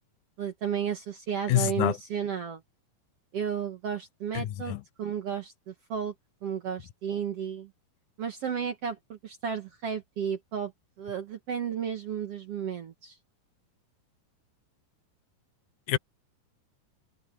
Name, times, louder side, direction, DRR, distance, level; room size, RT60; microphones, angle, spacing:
voice 1, 0.4-2.6 3.3-6.1 6.4-7.7 8.2-10.7 11.0-13.2, right 7 dB, 55° right, 1.9 m, -33 dB
voice 2, 1.5-1.9 4.3-4.8 15.9-16.0, left 14 dB, 70° left, 2.2 m, -26 dB
omnidirectional pair, 4.1 m